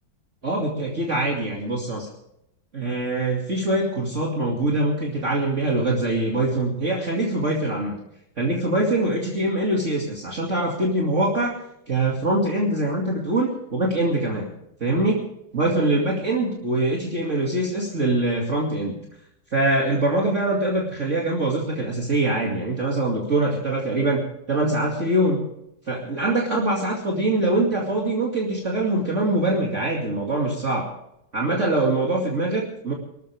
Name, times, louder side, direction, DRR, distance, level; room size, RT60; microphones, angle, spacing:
voice 1, 0.4-2.1 2.7-7.9 8.4-11.6 11.9-14.5 14.8-15.2 15.5-19.0 19.5-25.4 25.9-30.9 31.3-32.9, right 2 dB, 35° right, -2 dB, 2.7 m, -23 dB
24.5 x 13.5 x 3.5 m, 0.80 s
omnidirectional pair, 2.3 m